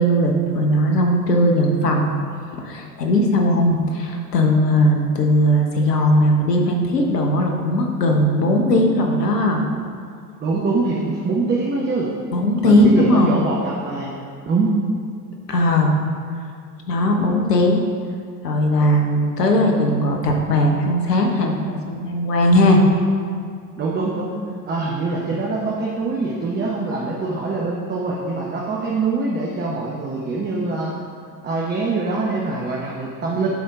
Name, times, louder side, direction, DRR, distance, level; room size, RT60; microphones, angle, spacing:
voice 1, 0.0-2.1 2.6-9.6 12.3-13.4 15.5-16.0 16.9-17.8 18.4-22.8, left 1 dB, 75° left, 2 dB, 1.2 m, -18 dB
voice 2, 10.4-12.1 12.6-14.2 14.5-14.7 23.8-24.3 24.7-30.9 31.4-33.5, right 3 dB, 20° right, -4 dB, 0.9 m, -24 dB
10.0 x 4.2 x 3.7 m, 2.2 s
figure-of-eight pair, 75°, 48 cm